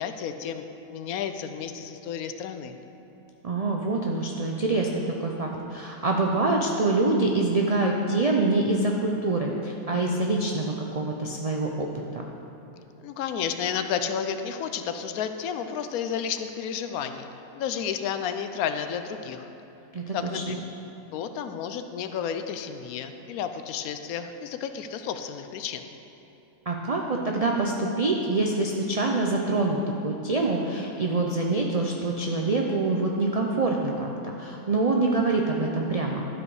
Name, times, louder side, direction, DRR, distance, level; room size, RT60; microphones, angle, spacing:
voice 1, 0.0-2.8 13.0-17.3 17.5-19.5 20.1-20.6 21.1-25.9, left 7 dB, 85° left, 8 dB, 1.0 m, -32 dB
voice 2, 3.4-12.2 19.9-20.6 26.7-36.3, right 2 dB, 75° right, 0 dB, 0.3 m, -25 dB
12.0 x 5.0 x 4.8 m, 3.0 s
omnidirectional pair, 1.5 m